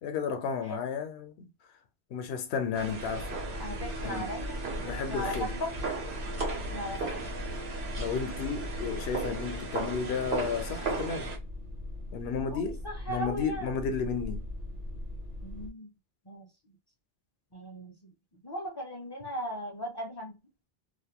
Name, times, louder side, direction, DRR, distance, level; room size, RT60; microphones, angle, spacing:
voice 1, 0.0-1.5 2.1-3.4 4.0-4.3 4.8-5.5 8.0-11.3 12.1-12.8 13.1-14.5, left 6 dB, 80° left, 0.8 m, -33 dB
sound 1, 2.7-11.4, right 3 dB, 80° right, 1.1 m, -36 dB
sound 2, 3.0-15.7, left 1 dB, 60° right, 0.9 m, -41 dB
voice 2, 3.6-5.7 6.5-7.3 12.5-13.8 15.4-15.9 16.3-16.5 17.5-18.0 18.4-20.3, equal, 35° left, 0.4 m, -38 dB
2.6 x 2.1 x 2.7 m
omnidirectional pair, 1.1 m